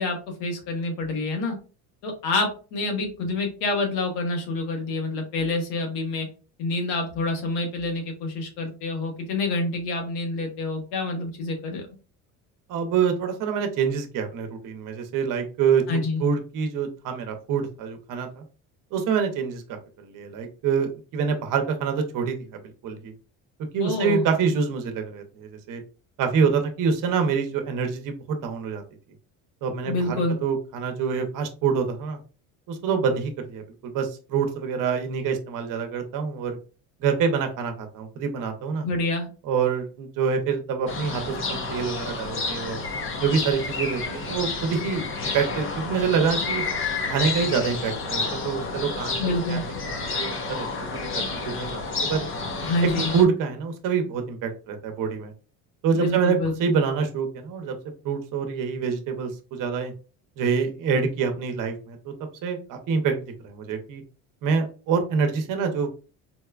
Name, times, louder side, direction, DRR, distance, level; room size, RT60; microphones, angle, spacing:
voice 1, 0.0-1.6 2.0-6.3 6.6-11.8 15.9-16.2 23.8-24.2 29.9-30.4 38.8-39.3 49.2-49.6 52.6-53.1 55.9-56.7, left 2 dB, 80° left, 3 dB, 1.3 m, -27 dB
voice 2, 12.7-18.4 18.9-19.6 20.0-23.1 23.7-25.8 26.2-28.8 29.6-32.2 32.7-36.6 37.0-38.9 39.4-42.8 43.2-46.6 47.1-49.2 49.5-49.6 49.9-51.1 51.5-52.3 53.1-55.3 55.8-57.7 58.0-59.9 60.4-62.1 62.4-64.0 64.4-65.9, right 6 dB, 55° right, 5 dB, 0.8 m, -26 dB
sound 1, 40.9-53.2, left 4 dB, 35° left, 0.7 m, -30 dB
4.1 x 2.2 x 2.4 m, 0.35 s
cardioid pair, 120°, 39 cm